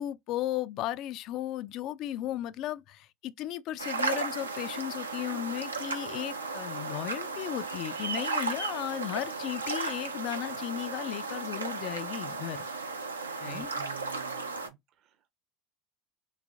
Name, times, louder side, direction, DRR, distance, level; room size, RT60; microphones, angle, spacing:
voice 1, 0.0-12.7 13.4-13.7, left 13 dB, 55° left, 0.3 m, -35 dB
sound 1, 3.8-14.7, right 4 dB, 90° right, 0.5 m, -35 dB
voice 2, 13.5-15.1, right 11 dB, 50° right, 0.7 m, -49 dB
3.2 x 3.2 x 2.4 m
figure-of-eight pair, 70°, 0 cm